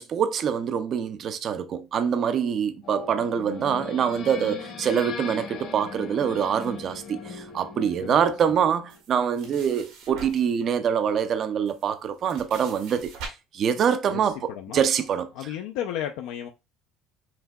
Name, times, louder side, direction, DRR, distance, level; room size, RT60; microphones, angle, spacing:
voice 1, 0.0-13.1 13.5-15.3, right 7 dB, 40° right, 0.4 m, -25 dB
sound 1, 2.8-9.0, left 5 dB, 50° left, 0.9 m, -39 dB
sound 2, 8.9-10.6 11.2-11.3 11.7-13.3, right 4 dB, 85° right, 1.6 m, -43 dB
voice 2, 14.1-14.9 15.3-16.5, left 10 dB, 85° left, 0.4 m, -33 dB
5.7 x 2.7 x 2.2 m
cardioid pair, 160°, 0 cm